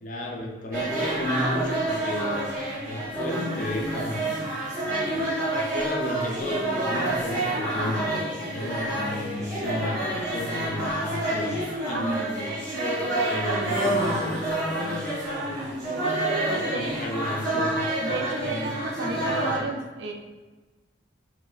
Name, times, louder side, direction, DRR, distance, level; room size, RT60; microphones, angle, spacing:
voice 1, 0.0-2.4 2.7-4.3 4.8-12.6 12.9-15.7 16.5-18.2 18.5-18.8 19.0-19.7, left 1 dB, 45° left, 0 dB, 0.5 m, -34 dB
sound 1, 0.7-19.6, right 1 dB, 15° right, 1.4 m, -28 dB
voice 2, 7.5-7.9 8.6-8.7 11.9-12.4 16.5-16.9 18.0-20.1, right 3 dB, 75° right, 3 dB, 0.4 m, -33 dB
4.8 x 2.1 x 2.3 m, 1.3 s
head